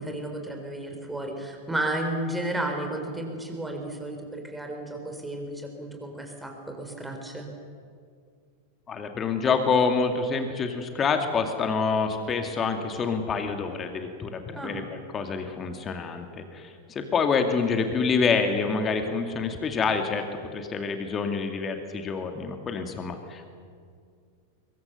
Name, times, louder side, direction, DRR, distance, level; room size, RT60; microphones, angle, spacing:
voice 1, 0.0-7.5 14.5-14.8, right 1 dB, 5° right, 3 dB, 4.2 m, -33 dB
voice 2, 8.9-20.2 20.5-23.5, left 5 dB, 25° left, 5 dB, 2.2 m, -27 dB
24.5 x 23.0 x 6.8 m, 2.2 s
figure-of-eight pair, 90°, 0 cm